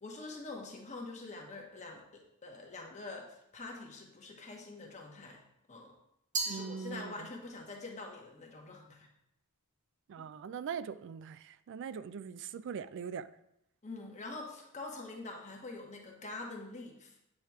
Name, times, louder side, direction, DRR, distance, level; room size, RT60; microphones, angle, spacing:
voice 1, 0.0-5.4 5.7-5.9 6.4-9.1 13.8-17.2, left 3 dB, 35° left, 1.1 m, -45 dB
Glass, 6.3-7.6, right 3 dB, 35° right, 0.8 m, -38 dB
voice 2, 6.5-7.1 10.1-13.3, right 6 dB, 60° right, 0.3 m, -41 dB
8.5 x 3.0 x 4.6 m
head